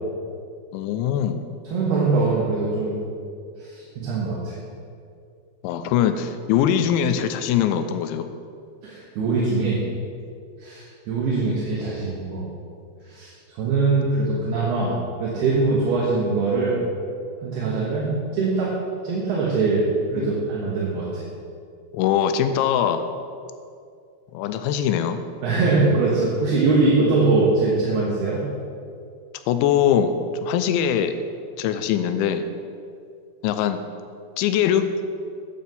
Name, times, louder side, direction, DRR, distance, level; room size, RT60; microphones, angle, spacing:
voice 1, 0.7-1.5 5.6-8.3 20.1-20.4 21.9-23.1 24.3-25.2 29.5-30.1 30.4-31.1 31.6-32.5 33.4-33.8 34.4-34.9, left 9 dB, 90° left, 9 dB, 3.0 m, -22 dB
voice 2, 1.6-3.0 3.7-4.5 8.8-9.8 10.6-12.4 13.1-14.9 15.2-16.8 17.4-18.7 19.0-19.9 20.1-21.2 25.4-28.4, right 3 dB, 70° right, -6 dB, 3.1 m, -22 dB
9.2 x 8.6 x 5.4 m, 2.4 s
omnidirectional pair, 5.2 m